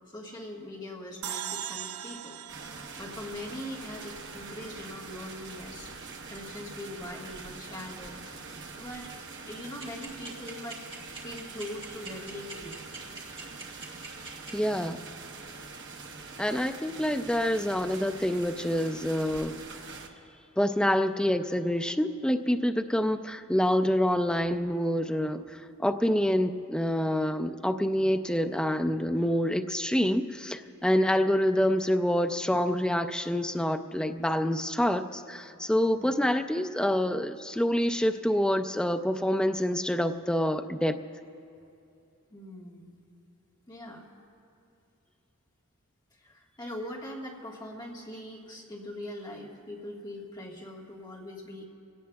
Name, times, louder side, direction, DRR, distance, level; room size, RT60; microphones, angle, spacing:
voice 1, 0.0-9.1 9.5-10.8 11.2-12.8 36.0-36.2 42.3-43.0 43.7-44.0 46.2-51.6, left 1 dB, 20° left, -4 dB, 1.6 m, -42 dB
sound 1, 1.2-4.5, right 10 dB, 75° right, 0.4 m, -40 dB
sound 2, 2.5-20.1, right 4 dB, 55° right, 1.1 m, -44 dB
sound 3, 9.8-14.5, right 3 dB, 25° right, 2.3 m, -41 dB
voice 2, 14.5-15.0 16.4-19.5 20.6-40.9, equal, 5° left, 6 dB, 0.4 m, -27 dB
25.0 x 17.5 x 2.4 m, 2.7 s
head